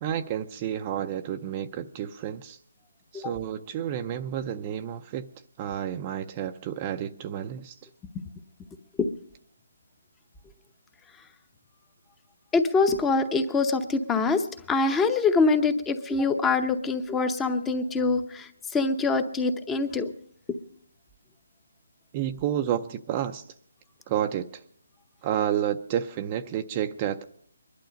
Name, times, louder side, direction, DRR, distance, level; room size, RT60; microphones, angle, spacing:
voice 1, 0.0-2.6 3.1-5.3 5.6-7.8 22.1-23.4 24.1-24.5 25.2-27.2, right 10 dB, 25° right, 7 dB, 0.5 m, -30 dB
voice 2, 12.5-20.1, left 4 dB, 10° left, 9 dB, 0.8 m, -24 dB
22.0 x 11.5 x 5.2 m, 0.63 s
hypercardioid pair, 160°, 0 cm